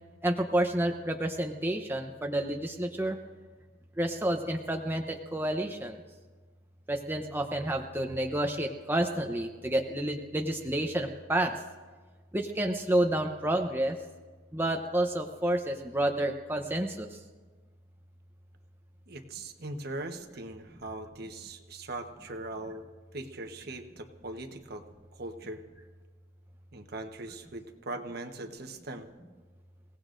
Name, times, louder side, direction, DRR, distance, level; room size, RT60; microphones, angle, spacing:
voice 1, 0.2-3.2 4.0-6.0 6.9-11.5 12.3-14.0 14.5-17.1, right 1 dB, 10° right, 3 dB, 0.8 m, -29 dB
voice 2, 19.1-22.9 23.1-24.8 25.1-25.6 26.7-29.1, right 2 dB, 50° right, 5 dB, 1.1 m, -40 dB
29.0 x 17.5 x 2.6 m, 1.4 s
head